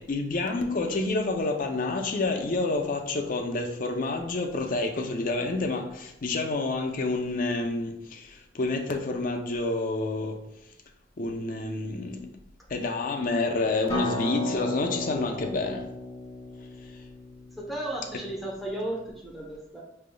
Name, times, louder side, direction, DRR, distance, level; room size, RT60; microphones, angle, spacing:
voice 1, 0.0-10.4 11.2-12.4 12.7-15.9, left 3 dB, 50° left, 0.5 m, -28 dB
Acoustic guitar, 13.9-19.1, left 1 dB, 20° left, 1.4 m, -35 dB
voice 2, 17.6-19.8, right 1 dB, ahead, 0.8 m, -34 dB
4.8 x 3.4 x 2.2 m
head